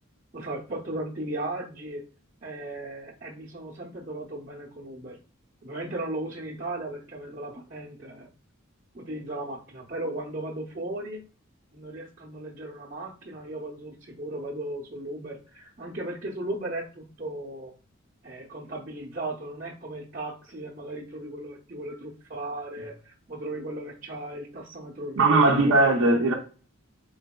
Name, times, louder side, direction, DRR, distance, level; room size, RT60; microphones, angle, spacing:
voice 1, 0.3-2.0 2.4-5.2 5.6-8.3 8.9-11.2 11.7-17.7 18.2-25.9, right 1 dB, 40° right, 0.8 m, -36 dB
voice 2, 25.2-26.3, right 2 dB, 70° right, 0.6 m, -19 dB
4.0 x 3.8 x 2.2 m
head